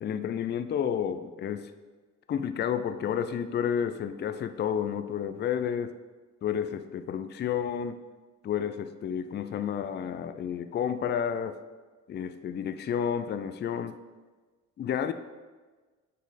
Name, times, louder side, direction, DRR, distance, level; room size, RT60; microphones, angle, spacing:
voice 1, 0.0-1.7 2.3-6.0 6.4-8.0 8.4-11.6 12.1-14.0 14.8-15.1, left 8 dB, 35° left, 10 dB, 0.4 m, -31 dB
7.1 x 4.1 x 4.1 m, 1.3 s
cardioid pair, 90°, 30 cm